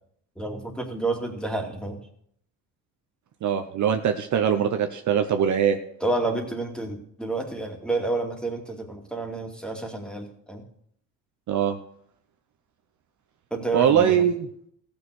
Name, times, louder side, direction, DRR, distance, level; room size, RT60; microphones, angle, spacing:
voice 1, 0.4-2.0 6.0-10.6 13.5-14.3, right 2 dB, ahead, 2 dB, 2.5 m, -29 dB
voice 2, 3.4-5.8 11.5-11.8 13.7-14.5, right 8 dB, 50° right, 7 dB, 1.0 m, -22 dB
15.0 x 6.8 x 6.5 m, 0.68 s
supercardioid pair, 95°, 38 cm